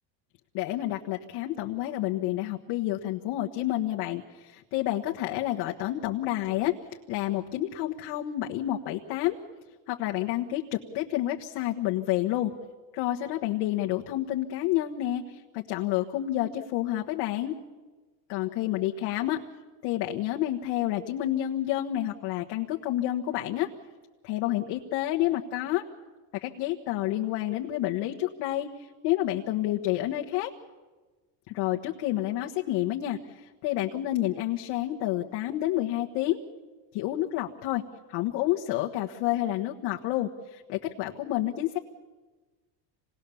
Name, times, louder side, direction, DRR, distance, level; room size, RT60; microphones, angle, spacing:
voice 1, 0.5-6.7 7.1-9.4 9.9-12.5 12.9-17.5 18.3-19.4 19.8-23.7 24.2-25.8 26.4-30.5 31.5-36.4 36.9-37.8 38.1-41.8, left 14 dB, 60° left, 1 dB, 1.3 m, -29 dB
27.0 x 19.0 x 7.0 m, 1.3 s
cardioid pair, 145°, 49 cm